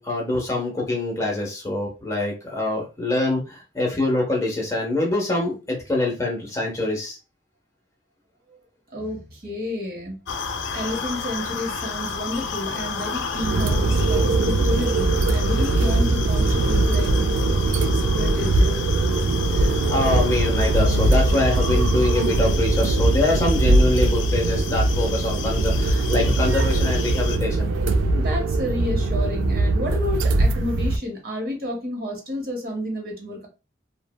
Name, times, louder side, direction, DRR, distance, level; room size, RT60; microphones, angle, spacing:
voice 1, 0.0-7.2 19.5-27.7, left 2 dB, 15° left, -1 dB, 0.7 m, -25 dB
voice 2, 8.9-10.2 10.7-18.8 28.1-33.5, left 1 dB, 50° right, 1 dB, 0.8 m, -31 dB
sound 1, 10.3-27.4, left 5 dB, 80° left, 0.4 m, -32 dB
sound 2, 13.3-31.0, right 2 dB, 85° right, 0.3 m, -21 dB
3.1 x 2.0 x 2.2 m, 0.30 s
head